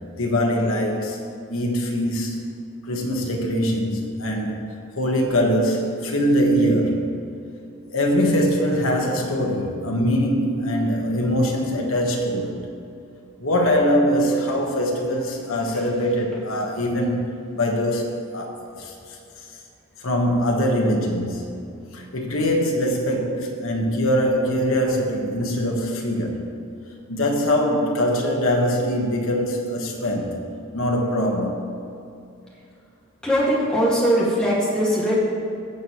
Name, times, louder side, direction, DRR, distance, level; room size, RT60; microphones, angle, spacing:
voice 1, 0.2-1.2 1.5-2.4 2.9-4.6 5.0-7.2 7.9-12.6 13.4-18.9 20.0-26.5 27.1-30.4 30.7-31.7, equal, 65° left, 0 dB, 1.3 m, -22 dB
voice 2, 33.2-35.1, equal, 5° left, -7 dB, 1.9 m, -20 dB
15.5 x 7.1 x 3.1 m, 2.6 s
head